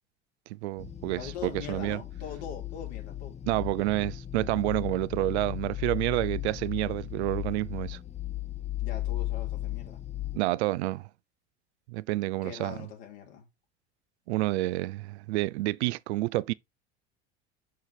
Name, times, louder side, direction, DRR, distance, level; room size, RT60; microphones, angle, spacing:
voice 1, 0.5-2.0 3.4-8.0 10.3-11.1 11.9-12.7 14.3-16.5, right 18 dB, 75° right, 0.6 m, -29 dB
sound 1, 0.8-10.4, left 14 dB, 20° left, 0.9 m, -36 dB
voice 2, 1.2-3.4 8.8-10.0 12.4-13.5, left 8 dB, 70° left, 3.8 m, -42 dB
6.4 x 6.1 x 4.2 m
hypercardioid pair, 85°, 34 cm